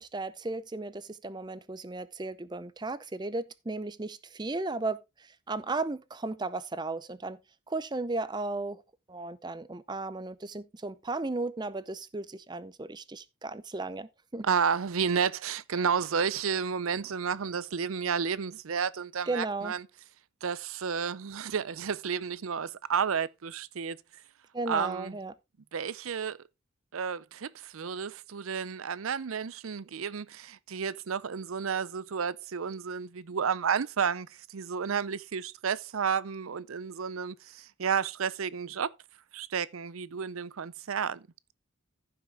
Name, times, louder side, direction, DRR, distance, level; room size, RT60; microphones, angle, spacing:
voice 1, 0.0-7.4 7.7-8.8 9.1-14.5 19.3-19.7 24.5-25.3, right 2 dB, 20° right, 0.6 m, -35 dB
voice 2, 14.4-19.9 20.4-24.0 24.7-25.2 25.7-26.4 26.9-38.9 39.3-41.2, right 6 dB, 85° right, 0.6 m, -31 dB
14.5 x 5.9 x 3.4 m
head